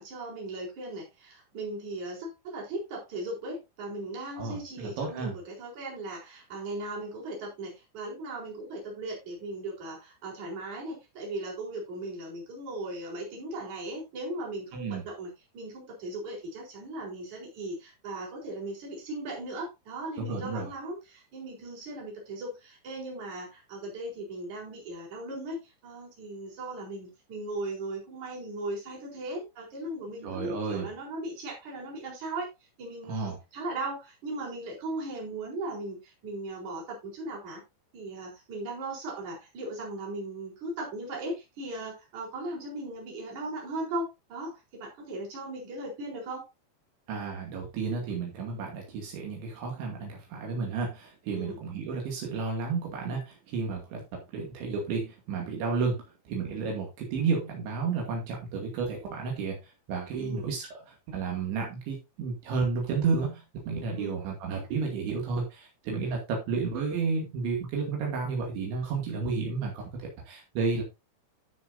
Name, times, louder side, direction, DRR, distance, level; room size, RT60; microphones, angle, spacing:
voice 1, 0.0-32.5 32.8-37.6 37.9-46.5 51.3-51.6 60.2-60.5 64.0-64.1, right 2 dB, 40° right, -3 dB, 5.1 m, -38 dB
voice 2, 4.4-5.3 14.7-15.0 20.2-20.7 30.2-30.9 33.1-33.4 47.1-54.0 54.3-56.0 56.3-59.6 59.9-60.8 61.1-70.8, right 4 dB, 75° right, 0 dB, 4.6 m, -32 dB
14.0 x 6.7 x 2.7 m, 0.23 s
omnidirectional pair, 5.4 m